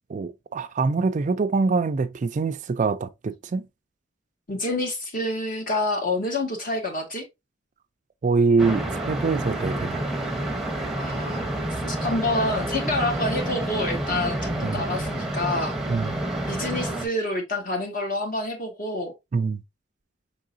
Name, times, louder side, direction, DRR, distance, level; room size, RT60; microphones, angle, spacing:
voice 1, 0.1-3.7 8.2-10.0 14.6-14.8 15.9-16.2 19.3-19.6, right 4 dB, 40° right, 0.4 m, -24 dB
voice 2, 4.5-7.3 11.0-11.5 11.9-15.7 16.5-19.1, left 2 dB, 45° left, 1.4 m, -27 dB
sound 1, 8.6-17.1, right 1 dB, ahead, 0.8 m, -29 dB
5.4 x 3.7 x 2.5 m
head